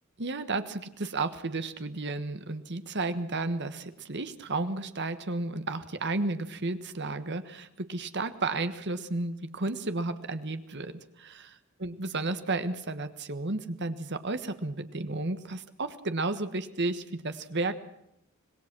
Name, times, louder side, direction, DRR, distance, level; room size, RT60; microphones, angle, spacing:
voice 1, 0.2-11.5 11.8-17.8, right 2 dB, 55° right, 10 dB, 1.4 m, -32 dB
25.5 x 19.5 x 6.1 m, 0.81 s
head